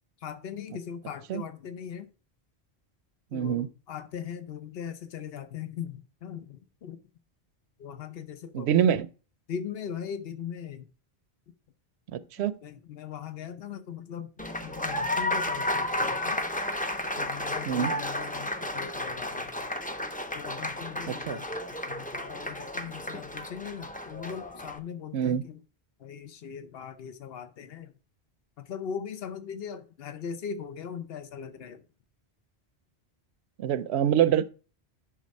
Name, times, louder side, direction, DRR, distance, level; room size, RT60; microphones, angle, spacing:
voice 1, 0.2-2.1 3.3-7.0 7.8-8.9 9.5-10.9 12.6-14.3 14.6-16.4 17.2-19.7 20.3-21.6 21.8-25.6 26.0-27.9 28.6-31.8, left 7 dB, 65° left, 1.0 m, -39 dB
voice 2, 3.3-3.7 8.5-9.1 12.1-12.6 17.7-17.9 21.3-21.4 25.1-25.5 33.6-34.5, right 9 dB, 85° right, 0.8 m, -25 dB
Applause, 14.4-24.8, left 1 dB, 10° left, 0.5 m, -32 dB
10.0 x 3.6 x 5.3 m
omnidirectional pair, 1.1 m